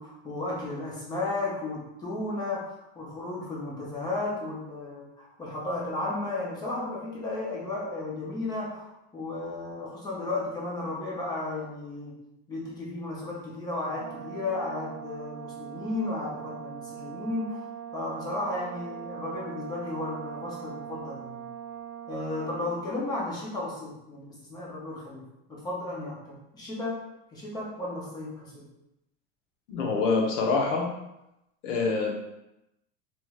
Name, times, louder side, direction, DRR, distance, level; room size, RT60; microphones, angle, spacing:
voice 1, 0.0-2.6 2.9-8.9 9.1-12.1 12.5-21.4 22.1-27.0 27.3-28.6, left 2 dB, 10° left, -5 dB, 0.4 m, -34 dB
Brass instrument, 14.0-22.9, right 9 dB, 70° right, 0.5 m, -41 dB
voice 2, 29.7-30.9 31.6-32.1, left 4 dB, 85° left, 1 dB, 0.8 m, -25 dB
3.2 x 2.9 x 2.3 m, 0.89 s
supercardioid pair, 165°, 36 cm